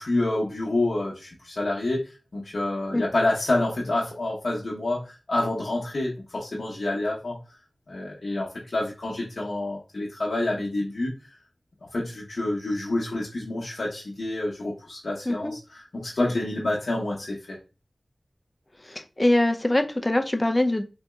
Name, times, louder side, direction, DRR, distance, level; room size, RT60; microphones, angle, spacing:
voice 1, 0.0-2.0 2.3-7.4 7.9-11.1 11.9-17.6, left 2 dB, 70° left, -6 dB, 0.8 m, -28 dB
voice 2, 18.9-20.8, left 1 dB, 25° left, 6 dB, 0.5 m, -23 dB
3.9 x 2.7 x 2.2 m, 0.31 s
wide cardioid pair, 55°, 0 cm